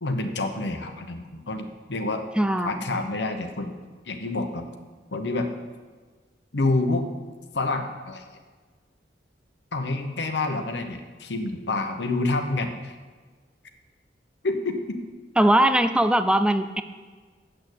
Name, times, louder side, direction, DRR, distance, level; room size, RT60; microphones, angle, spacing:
voice 1, 0.0-2.2 2.6-3.7 4.1-4.7 5.1-5.5 6.5-7.1 7.5-8.2 9.7-12.9 14.4-15.0, left 2 dB, 75° left, 5 dB, 1.0 m, -28 dB
voice 2, 2.4-3.0 15.4-16.8, right 1 dB, 5° right, 10 dB, 0.4 m, -21 dB
7.7 x 6.7 x 8.2 m, 1.4 s
head